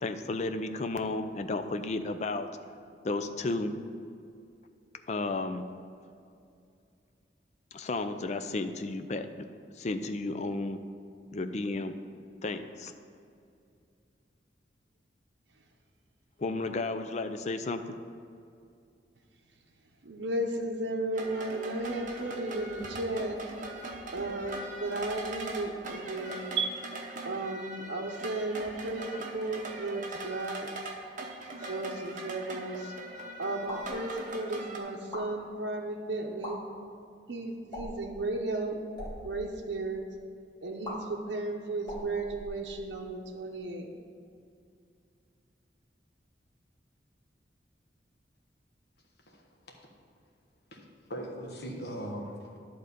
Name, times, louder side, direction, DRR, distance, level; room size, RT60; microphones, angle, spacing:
voice 1, 0.0-2.5 3.0-3.7 5.1-5.6 7.7-9.5 9.8-10.8 11.3-11.9 12.4-12.9 16.4-17.8, left 2 dB, 40° left, 8 dB, 0.4 m, -33 dB
voice 2, 20.0-23.4 24.1-26.8 27.2-30.7 31.6-32.9 33.4-36.6 37.3-38.8 39.2-40.0 40.6-43.9, right 2 dB, 75° right, 0 dB, 0.7 m, -34 dB
sound 1, 21.1-34.8, right 2 dB, 45° right, 0.9 m, -41 dB
sound 2, 33.7-34.0 35.0-35.3 36.3-36.5 37.7-38.1 38.8-39.1 40.8-40.9 41.8-43.0, left 1 dB, 25° left, 1.9 m, -41 dB
voice 3, 49.3-49.8 50.7-52.6, equal, 60° left, 0 dB, 1.3 m, -40 dB
11.0 x 3.9 x 6.7 m, 2.4 s
head